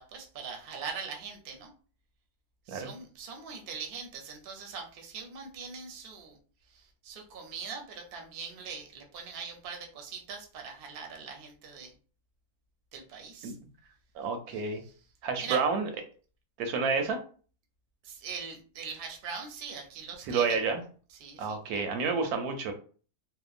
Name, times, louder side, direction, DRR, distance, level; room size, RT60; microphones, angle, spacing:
voice 1, 0.0-1.7 2.7-6.4 6.7-12.0 12.9-13.6 14.5-14.9 15.4-15.6 18.0-20.6 21.1-21.8, right 5 dB, 55° right, 3 dB, 0.7 m, -42 dB
voice 2, 14.2-14.8 15.2-15.9 16.6-17.2 20.3-20.8 21.4-22.7, right 5 dB, 85° right, 6 dB, 1.1 m, -29 dB
2.8 x 2.1 x 2.4 m, 0.39 s
omnidirectional pair, 1.6 m